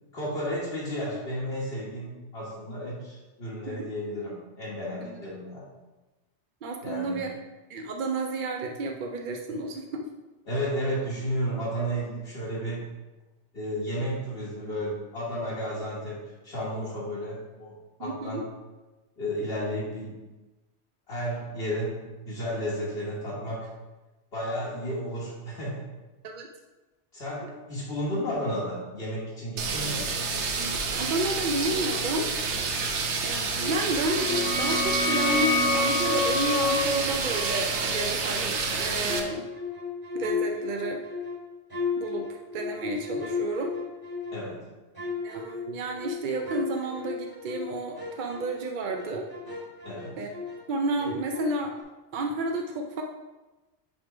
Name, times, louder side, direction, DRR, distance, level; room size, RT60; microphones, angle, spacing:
voice 1, 0.1-5.7 6.8-7.2 10.5-12.8 13.5-18.4 19.2-20.1 21.1-23.7 24.3-25.8 27.1-30.1 44.3-44.7 49.8-50.2, equal, 60° left, -9 dB, 1.6 m, -32 dB
voice 2, 6.6-7.3 7.7-10.1 18.0-18.4 26.2-26.5 30.5-32.3 33.2-39.5 40.1-41.0 42.0-43.7 45.2-49.3 50.2-50.3 50.7-51.7 52.1-53.0, right 2 dB, 55° right, 2 dB, 0.6 m, -31 dB
sound 1, 29.6-39.2, right 4 dB, 85° right, 1.0 m, -29 dB
sound 2, 33.5-35.4 35.7-38.4 38.7-44.5 44.9-50.7 50.9-51.8, left 5 dB, 20° right, 1.7 m, -36 dB
sound 3, 33.9-39.3, left 2 dB, 10° left, 0.7 m, -29 dB
6.1 x 3.7 x 4.9 m, 1.1 s
omnidirectional pair, 1.2 m